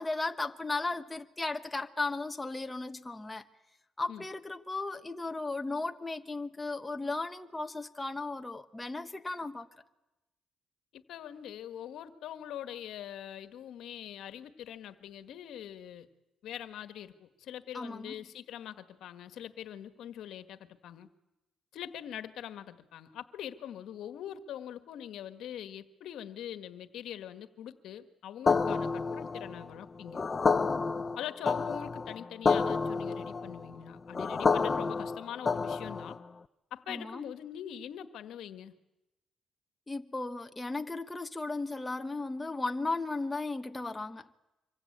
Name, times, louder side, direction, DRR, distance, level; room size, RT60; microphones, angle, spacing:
voice 1, 0.0-3.4 4.0-9.7 17.7-18.1 36.9-37.2 39.9-44.3, left 3 dB, 15° left, 1.2 m, -35 dB
voice 2, 10.9-16.1 16.4-21.1 21.7-30.2 31.2-36.2 36.7-38.8, left 10 dB, 80° left, 1.5 m, -43 dB
sound 1, 28.5-36.3, left 4 dB, 35° left, 0.9 m, -29 dB
25.5 x 23.0 x 8.7 m
cardioid pair, 90°, 0 cm